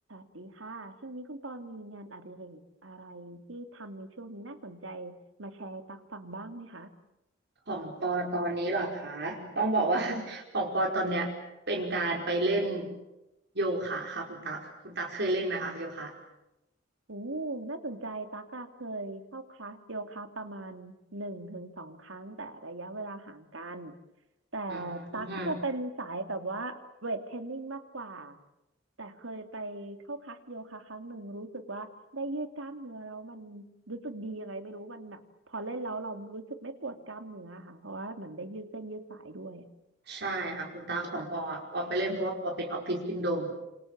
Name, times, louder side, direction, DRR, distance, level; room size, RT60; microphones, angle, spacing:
voice 1, 0.1-6.9 17.1-23.9 24.5-28.4 29.0-39.6, right 2 dB, 80° right, 7 dB, 2.9 m, -39 dB
voice 2, 7.7-11.3 11.7-12.9 13.5-16.1 24.7-25.6 40.1-43.5, right 2 dB, 60° right, 1 dB, 5.1 m, -31 dB
27.5 x 27.5 x 7.5 m, 0.92 s
head